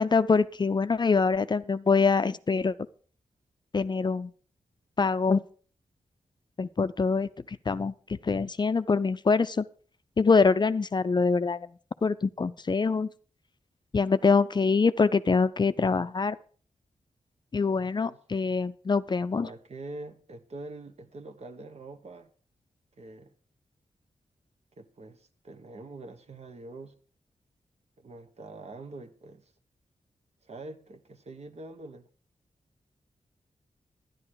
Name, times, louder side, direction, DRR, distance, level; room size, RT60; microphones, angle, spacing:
voice 1, 0.0-2.8 3.7-4.3 5.0-5.4 6.6-9.7 10.2-11.7 12.0-13.1 13.9-16.4 17.5-19.5, left 4 dB, 35° left, 0.5 m, -24 dB
voice 2, 19.4-22.3 23.0-23.3 24.8-26.9 28.0-29.5 30.4-32.1, right 2 dB, 60° right, 1.3 m, -44 dB
11.0 x 10.5 x 4.8 m
cardioid pair, 75°, 13 cm